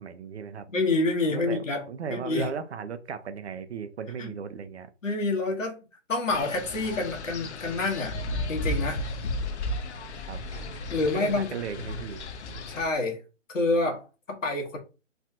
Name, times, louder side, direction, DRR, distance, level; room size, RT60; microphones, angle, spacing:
voice 1, 0.0-0.7 1.3-4.9 10.3-10.4 11.0-12.2, right 6 dB, 60° right, 0.6 m, -36 dB
voice 2, 0.7-1.8 2.1-2.5 4.2-4.3 5.0-5.8 6.1-8.2 8.5-9.0 10.9-11.5 12.7-13.2 13.5-14.8, left 2 dB, 85° left, 1.2 m, -27 dB
Wind, 6.3-12.9, left 1 dB, 65° left, 0.7 m, -34 dB
sound 1, 8.0-13.0, right 5 dB, ahead, 0.9 m, -48 dB
3.2 x 2.2 x 2.7 m
hypercardioid pair, 155°, 37 cm